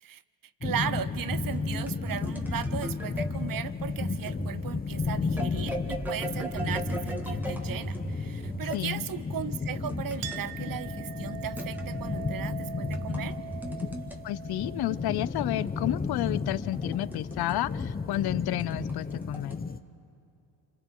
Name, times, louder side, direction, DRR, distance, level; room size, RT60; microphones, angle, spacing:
sound 1, 0.6-19.8, left 4 dB, 20° left, 0.7 m, -33 dB
voice 1, 0.6-13.4, right 9 dB, 45° right, 15 dB, 0.7 m, -37 dB
sound 2, 1.3-8.8 9.9-10.4 11.6-12.0 12.8-14.2 15.6-17.5 17.8-17.9 18.5-19.5, right 1 dB, 5° right, 1.7 m, -37 dB
voice 2, 8.7-9.1 14.2-19.6, left 15 dB, 55° left, 19 dB, 0.5 m, -31 dB
Chink clink, 10.2-17.3, right 16 dB, 80° right, 0.6 m, -44 dB
27.5 x 26.0 x 3.8 m, 2.6 s
supercardioid pair, 75°, 47 cm